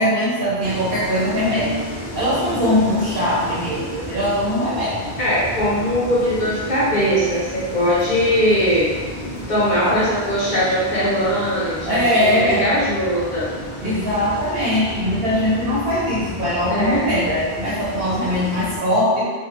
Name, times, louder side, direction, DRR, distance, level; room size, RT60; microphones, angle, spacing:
voice 1, 0.0-1.8 2.1-5.1 9.8-10.0 11.8-12.7 13.8-19.3, equal, 65° right, -8 dB, 1.0 m, -21 dB
sound 1, 0.6-18.8, equal, 70° left, 1.0 m, -33 dB
voice 2, 5.2-8.9 9.5-13.5 16.7-17.0, equal, 45° left, -10 dB, 1.2 m, -20 dB
3.3 x 2.1 x 3.0 m, 1.4 s
omnidirectional pair, 1.1 m